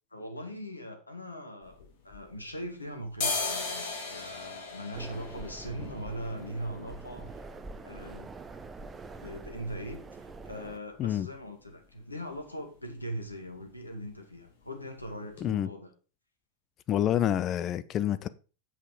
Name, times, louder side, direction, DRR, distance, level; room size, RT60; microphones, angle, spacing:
voice 1, 0.1-1.8 2.0-7.3 7.8-8.3 9.2-15.9, equal, 85° left, 2.3 m, -40 dB
sound 1, 1.6-2.7 3.0-10.7 11.0-11.1 11.4-12.0 12.3-12.5 12.8-13.0 13.3-14.0 14.3-14.5 15.0-15.1 15.4-15.5, left 3 dB, 50° left, 3.1 m, -39 dB
sound 2, 4.9-10.8, right 3 dB, 15° right, 0.9 m, -45 dB
voice 2, 16.9-18.3, left 11 dB, 30° left, 0.6 m, -27 dB
8.3 x 7.5 x 5.3 m
figure-of-eight pair, 90°, 0 cm